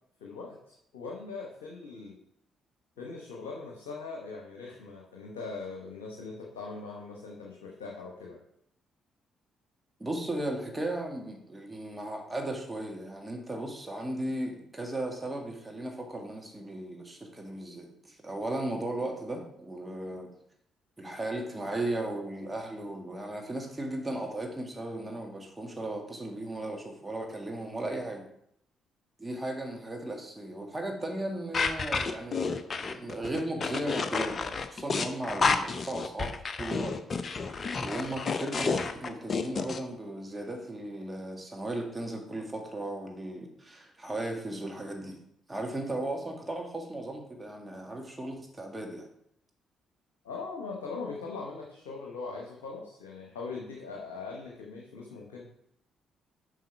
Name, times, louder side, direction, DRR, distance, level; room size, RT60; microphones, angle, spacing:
voice 1, 0.2-2.2 3.0-8.4 50.2-55.5, left 4 dB, 75° left, -2 dB, 1.0 m, -41 dB
voice 2, 10.0-20.3 21.0-28.2 29.2-37.0 37.8-45.2 45.5-49.1, right 1 dB, 15° right, 2 dB, 1.7 m, -36 dB
sound 1, 31.5-39.8, left 4 dB, 40° left, 0.6 m, -30 dB
7.6 x 5.1 x 4.5 m, 0.71 s
figure-of-eight pair, 40°, 0 cm